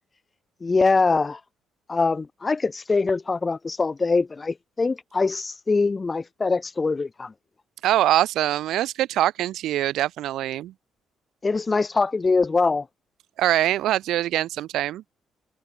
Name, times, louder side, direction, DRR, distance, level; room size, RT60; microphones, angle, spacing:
voice 1, 0.6-1.4 1.9-7.3 11.4-12.9, left 4 dB, 30° left, 3.2 m, -23 dB
voice 2, 7.8-10.7 13.4-15.0, right 13 dB, 85° right, 4.4 m, -23 dB
cardioid pair, 90°, 0 cm